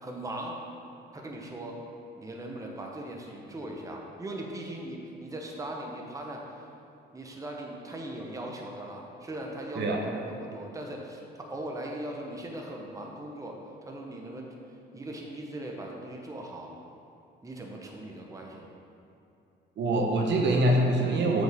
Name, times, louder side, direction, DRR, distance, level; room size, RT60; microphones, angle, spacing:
voice 1, 0.0-0.6 1.1-1.8 2.2-6.4 7.1-14.5 14.9-16.7 17.4-18.7, right 1 dB, 15° right, 0 dB, 0.9 m, -39 dB
voice 2, 19.8-21.4, right 1 dB, 65° right, 0 dB, 0.9 m, -24 dB
7.6 x 5.1 x 3.5 m, 2.7 s
cardioid pair, 90°, 20 cm